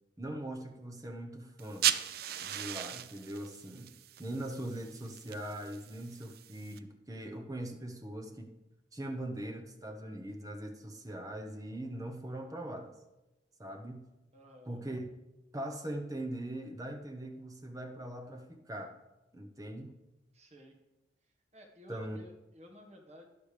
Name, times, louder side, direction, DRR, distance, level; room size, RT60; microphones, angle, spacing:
voice 1, 0.2-1.9 2.4-3.9 4.2-8.5 8.9-12.9 13.6-14.1 14.7-15.1 15.5-18.9 19.3-19.9 21.9-22.2, right 1 dB, 20° right, 4 dB, 1.1 m, -41 dB
sound 1, 1.6-6.8, right 11 dB, 55° right, 0.5 m, -37 dB
voice 2, 14.3-14.8 20.3-20.8 21.2-23.3, equal, 35° right, 2 dB, 1.6 m, -55 dB
11.5 x 11.0 x 3.4 m, 1.0 s
head